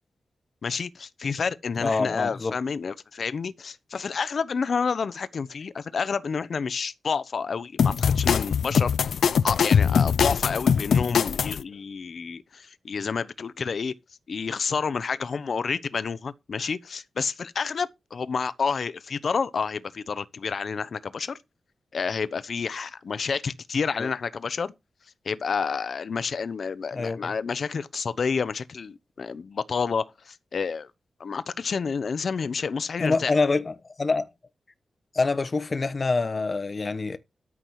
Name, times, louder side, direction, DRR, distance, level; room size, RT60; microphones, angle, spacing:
voice 1, 0.6-9.1 9.4-13.9 14.3-21.4 21.9-24.7 25.2-30.9 31.2-33.3, left 5 dB, 55° left, 0.9 m, -29 dB
voice 2, 1.8-2.5 24.0-24.1 26.9-27.2 33.0-34.3 35.1-37.2, left 3 dB, 35° left, 1.1 m, -26 dB
sound 1, 7.8-11.6, left 7 dB, 85° left, 0.6 m, -22 dB
13.0 x 7.4 x 4.8 m
wide cardioid pair, 160°, 0 cm